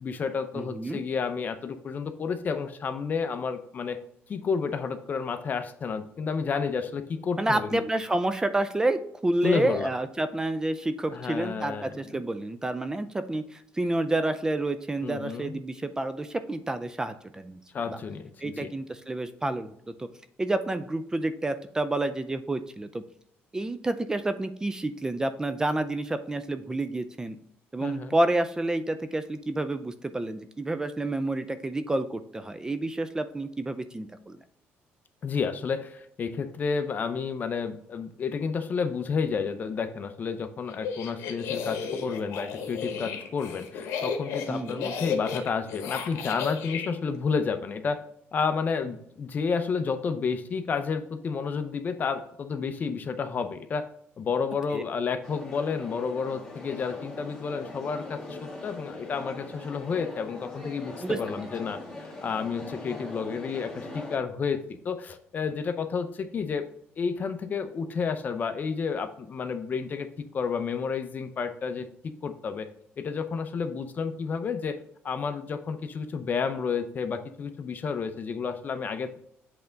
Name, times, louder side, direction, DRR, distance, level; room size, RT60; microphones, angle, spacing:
voice 1, 0.0-4.0 4.3-7.8 9.4-9.9 11.1-12.0 15.0-15.6 17.7-18.7 27.8-28.2 35.2-48.0 48.3-53.8 54.2-66.7 67.0-70.1 70.3-72.7 73.0-74.8 75.0-79.2, left 5 dB, 40° left, 9 dB, 0.7 m, -31 dB
voice 2, 0.5-1.0 7.4-17.6 17.9-18.0 18.4-20.1 20.4-23.0 23.5-27.4 27.7-34.4 44.5-44.9 54.7-54.8 61.0-61.5, right 2 dB, 15° right, 10 dB, 0.4 m, -29 dB
sound 1, 40.7-46.9, left 6 dB, 90° left, 1.1 m, -34 dB
sound 2, 55.2-64.2, left 2 dB, 15° left, 1.7 m, -41 dB
7.8 x 3.4 x 3.9 m, 0.69 s
cardioid pair, 115°, 4 cm